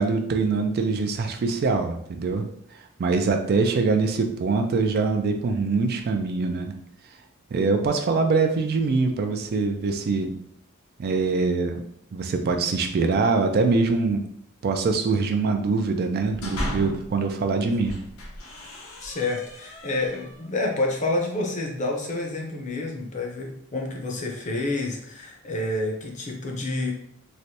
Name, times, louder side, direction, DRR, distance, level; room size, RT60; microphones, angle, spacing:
voice 1, 0.0-2.5 3.0-6.7 7.5-10.3 11.0-11.8 12.1-14.2 14.6-18.0, right 4 dB, 50° right, 5 dB, 0.3 m, -23 dB
sound 1, 16.1-17.2 17.7-20.5, equal, 85° left, 0.8 m, -36 dB
voice 2, 19.0-26.9, left 2 dB, 35° left, 0 dB, 0.6 m, -28 dB
3.2 x 2.6 x 2.7 m, 0.69 s
head